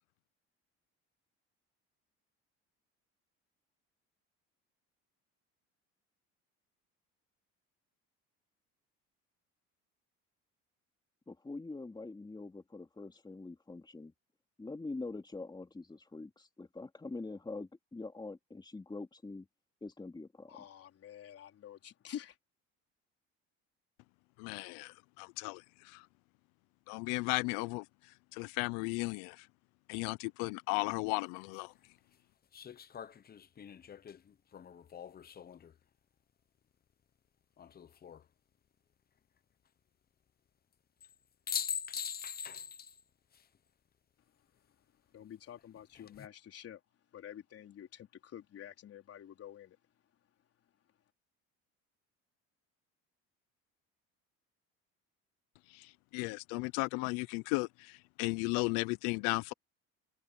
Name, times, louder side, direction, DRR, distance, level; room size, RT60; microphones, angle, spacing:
voice 1, 11.3-14.1 14.6-19.5 19.8-20.6, left 3 dB, 15° left, 2.9 m, -44 dB
voice 2, 20.5-22.4 45.1-46.8 47.1-49.8, left 10 dB, 50° left, 4.2 m, -49 dB
voice 3, 24.4-26.1 26.9-27.9 28.3-29.5 29.9-31.7 55.7-59.5, left 28 dB, 85° left, 0.5 m, -35 dB
sound 1, 31.1-31.2 32.5-35.8 37.6-38.2 41.0-41.1 41.5-43.0 43.3-43.4 45.8-46.3, left 8 dB, 30° left, 0.9 m, -42 dB
cardioid pair, 100°, 31 cm